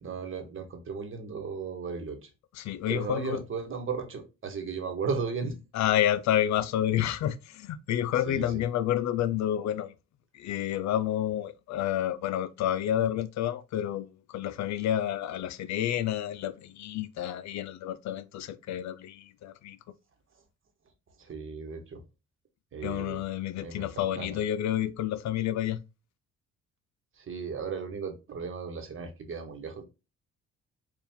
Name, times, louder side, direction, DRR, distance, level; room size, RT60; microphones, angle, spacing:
voice 1, 0.0-2.3 2.9-5.6 8.3-8.6 21.2-22.0 22.7-23.2 23.6-24.4 27.2-29.8, right 5 dB, 45° right, 1.1 m, -36 dB
voice 2, 2.6-3.4 5.7-9.9 10.3-19.8 22.8-25.8, left 11 dB, 65° left, 0.4 m, -29 dB
4.3 x 2.4 x 3.5 m
cardioid pair, 90°, 30 cm